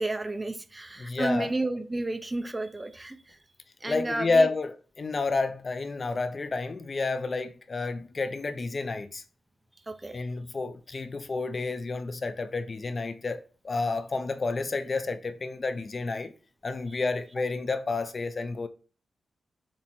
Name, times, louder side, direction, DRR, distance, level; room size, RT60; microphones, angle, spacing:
voice 1, 0.0-3.4 3.8-4.5 9.9-10.2 16.9-17.0, right 2 dB, 20° right, 0.7 m, -32 dB
voice 2, 1.0-1.5 3.9-9.2 10.1-16.3 16.6-18.7, left 3 dB, 40° left, 0.6 m, -30 dB
7.4 x 3.0 x 4.3 m
wide cardioid pair, 115°, 0 cm